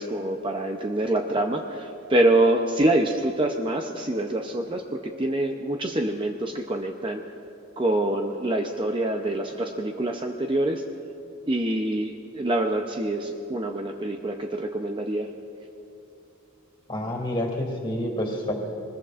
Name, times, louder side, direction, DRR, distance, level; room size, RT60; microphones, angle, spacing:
voice 1, 0.0-7.2 7.8-10.8 11.5-15.3, right 1 dB, 25° right, 3 dB, 0.6 m, -25 dB
voice 2, 16.9-18.5, left 1 dB, 25° left, 0 dB, 2.5 m, -28 dB
24.5 x 21.0 x 2.5 m, 2.8 s
head